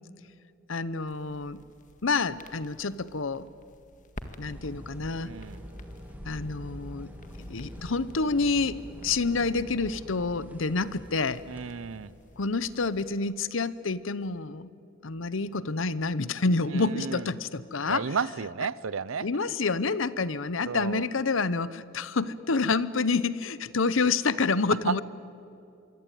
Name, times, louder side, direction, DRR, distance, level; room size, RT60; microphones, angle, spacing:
voice 1, 0.7-1.6 2.0-3.5 4.4-5.3 6.2-7.1 7.4-11.4 12.4-14.7 15.0-18.1 19.2-25.0, left 4 dB, 70° left, 17 dB, 0.8 m, -28 dB
sound 1, 1.1-13.2, left 1 dB, 40° left, 1.9 m, -52 dB
sound 2, 4.5-12.6, equal, 10° right, 3.0 m, -45 dB
voice 2, 5.2-5.6 11.5-12.1 16.7-17.3 17.9-19.3 20.7-21.0 24.9-25.0, right 5 dB, 75° right, 20 dB, 0.7 m, -32 dB
26.0 x 23.5 x 9.2 m, 2.7 s
head